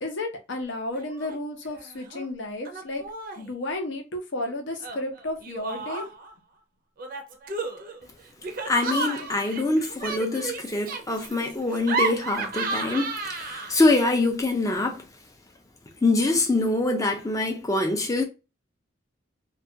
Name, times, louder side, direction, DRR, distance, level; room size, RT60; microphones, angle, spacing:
voice 1, 0.0-3.1 3.4-6.1, left 1 dB, 70° left, 0.6 m, -32 dB
Laughter, 0.9-1.4 1.6-2.3 2.7-3.5 4.8-6.3 7.0-13.9, right 3 dB, 45° right, 0.4 m, -33 dB
voice 2, 8.6-15.0 16.0-18.2, left 2 dB, 15° left, 0.4 m, -24 dB
2.3 x 2.2 x 2.7 m
head